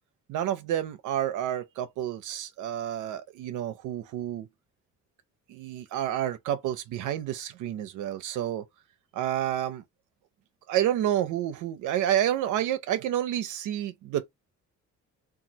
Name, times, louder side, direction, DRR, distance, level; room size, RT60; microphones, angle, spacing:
voice 1, 0.3-4.5 5.5-8.7 9.1-9.8 10.7-14.3, right 11 dB, 80° right, 0.5 m, -29 dB
2.9 x 2.3 x 2.6 m
cardioid pair, 90°, 30 cm